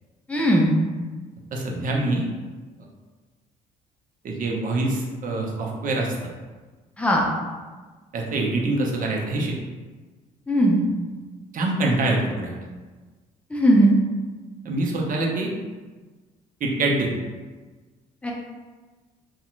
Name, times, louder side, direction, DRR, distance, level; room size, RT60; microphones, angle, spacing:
voice 1, 0.3-0.7 7.0-7.2 10.5-10.8 13.5-14.0 18.2-18.3, equal, 5° left, -2 dB, 0.5 m, -18 dB
voice 2, 1.5-2.3 4.2-6.1 8.1-9.6 11.5-12.6 14.6-15.5 16.6-17.1, right 2 dB, 45° right, -1 dB, 0.6 m, -25 dB
2.6 x 2.1 x 2.4 m, 1.3 s
hypercardioid pair, 50°, 20 cm